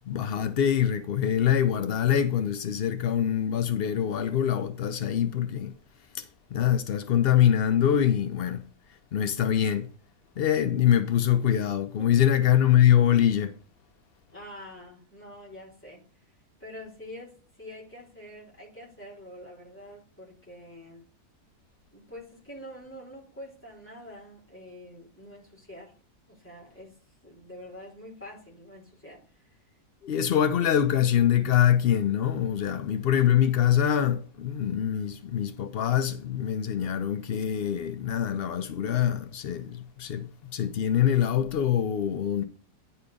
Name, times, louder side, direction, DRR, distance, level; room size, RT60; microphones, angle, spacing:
voice 1, 0.1-5.7 6.1-6.3 6.5-8.6 9.1-9.9 10.4-13.5 30.0-42.4, left 10 dB, 80° left, 0.5 m, -24 dB
voice 2, 12.0-12.5 14.3-16.0 16.6-21.0 21.9-25.9 26.3-29.6, left 1 dB, 5° left, 3.2 m, -46 dB
9.7 x 4.2 x 5.2 m
omnidirectional pair, 1.7 m